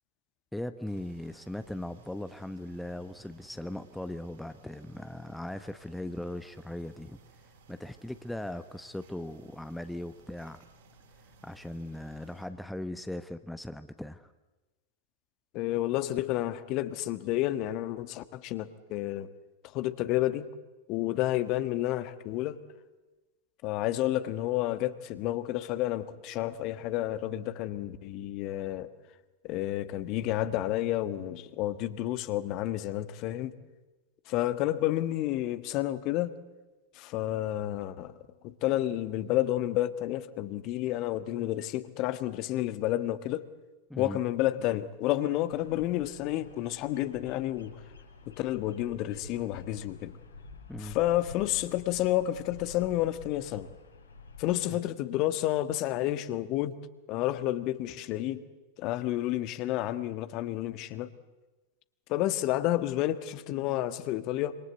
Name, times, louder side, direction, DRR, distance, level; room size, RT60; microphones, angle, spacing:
voice 1, 0.5-7.2 7.7-10.6 11.4-14.3 43.9-44.2 50.7-51.0, left 1 dB, 5° left, 11 dB, 1.1 m, -39 dB
sound 1, 0.9-12.5, right 3 dB, 60° right, 5.6 m, -59 dB
voice 2, 15.5-19.3 19.7-20.5 20.9-22.6 23.6-28.9 29.4-33.5 34.3-36.3 36.9-38.1 38.4-43.4 44.0-47.8 48.3-50.2 50.8-53.7 54.4-56.8 57.1-58.4 58.8-61.1 62.1-64.6, left 14 dB, 40° left, 13 dB, 1.5 m, -30 dB
Bird vocalization bird call bird song, 45.5-54.5, left 4 dB, 80° left, 6.5 m, -49 dB
27.0 x 25.5 x 8.1 m, 1.1 s
figure-of-eight pair, 90°, 0 cm